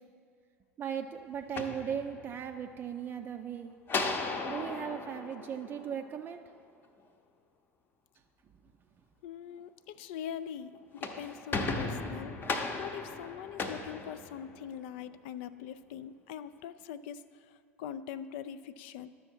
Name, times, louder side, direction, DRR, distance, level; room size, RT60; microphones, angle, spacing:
voice 1, 0.8-3.7 4.5-6.4, right 8 dB, 30° right, 5 dB, 0.4 m, -37 dB
sound 1, 1.4-2.6 3.9-6.4 10.8-14.8, left 3 dB, 30° left, 0.8 m, -36 dB
voice 2, 9.2-12.4 12.8-19.1, left 9 dB, 55° left, 14 dB, 0.4 m, -42 dB
11.5 x 6.9 x 4.4 m, 2.2 s
figure-of-eight pair, 75°, 7 cm